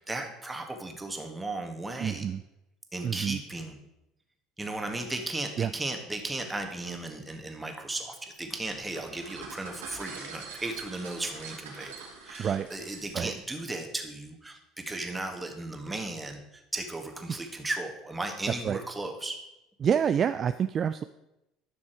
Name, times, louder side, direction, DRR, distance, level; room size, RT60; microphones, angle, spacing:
voice 1, 0.0-2.3 2.9-3.8 4.6-19.4, right 2 dB, 15° right, 4 dB, 1.9 m, -36 dB
voice 2, 2.0-2.4 3.0-3.4 5.6-5.7 12.4-12.7 13.1-13.3 18.6-18.8 19.8-21.0, right 8 dB, 40° right, 11 dB, 0.4 m, -27 dB
sound 1, 8.7-13.4, right 5 dB, 80° right, 2.2 m, -44 dB
12.0 x 6.2 x 4.7 m, 0.89 s
hypercardioid pair, 70°, 0 cm